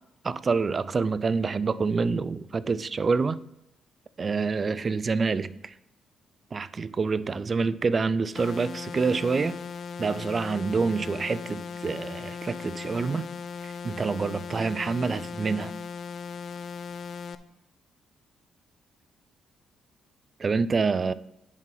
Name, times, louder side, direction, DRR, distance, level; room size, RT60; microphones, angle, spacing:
voice 1, 0.2-3.4 4.2-5.7 6.5-9.6 10.0-13.3 13.6-15.7 20.4-21.1, right 4 dB, 35° right, 0.4 m, -27 dB
sound 1, 8.3-17.3, left 6 dB, 55° left, 0.5 m, -38 dB
10.5 x 4.8 x 3.9 m
cardioid pair, 90°, 0 cm